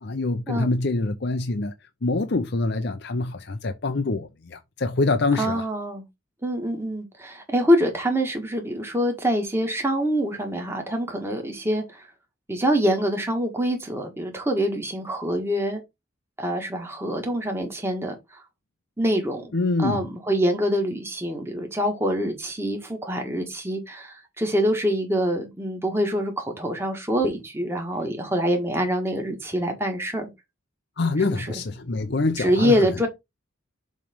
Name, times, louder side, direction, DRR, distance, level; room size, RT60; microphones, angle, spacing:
voice 1, 0.0-1.7 2.0-5.7 19.5-20.1 31.0-32.8, left 3 dB, 55° left, 0.7 m, -25 dB
voice 2, 5.4-6.0 6.4-12.1 12.5-15.8 16.4-18.4 19.0-19.5 19.8-30.3 31.3-31.6 32.4-33.1, equal, 10° right, 1.7 m, -25 dB
7.2 x 3.3 x 5.1 m
head